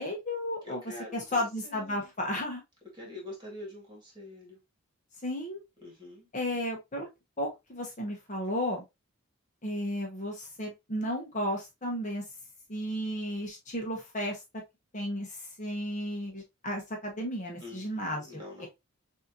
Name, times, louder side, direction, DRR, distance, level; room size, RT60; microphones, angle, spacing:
voice 1, 0.0-0.8 1.1-2.6 5.2-5.6 6.3-7.1 7.4-8.8 9.6-12.2 12.7-14.4 14.9-18.7, left 1 dB, 35° left, 1.1 m, -33 dB
voice 2, 0.6-2.1 2.9-4.6 5.8-6.3 17.6-18.7, left 2 dB, 20° right, 2.2 m, -45 dB
6.3 x 2.8 x 2.7 m
head